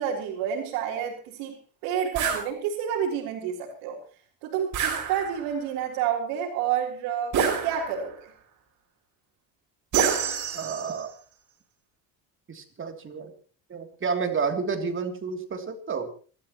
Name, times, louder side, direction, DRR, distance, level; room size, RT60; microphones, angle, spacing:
voice 1, 0.0-1.6 1.8-4.0 4.4-7.3 7.6-8.3, right 8 dB, 90° right, -5 dB, 4.0 m, -29 dB
sound 1, 2.1-2.5 4.7-5.5 7.3-8.1 9.9-11.0, right 7 dB, 50° right, 5.8 m, -27 dB
voice 2, 10.5-11.1 12.5-13.3 13.7-16.1, right 5 dB, 30° right, 5 dB, 3.1 m, -30 dB
28.0 x 13.0 x 3.1 m, 0.39 s
cardioid pair, 115°, 38 cm